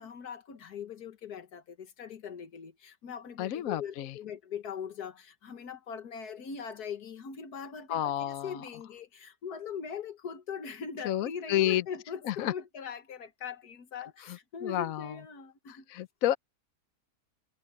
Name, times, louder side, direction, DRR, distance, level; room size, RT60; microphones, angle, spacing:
voice 1, 0.0-16.0, left 7 dB, 80° left, 1.9 m, -41 dB
voice 2, 3.4-4.1 7.9-8.6 11.0-11.8 12.2-12.5 14.2-15.2 15.7-16.4, left 12 dB, 65° left, 1.1 m, -30 dB
omnidirectional pair, 1.6 m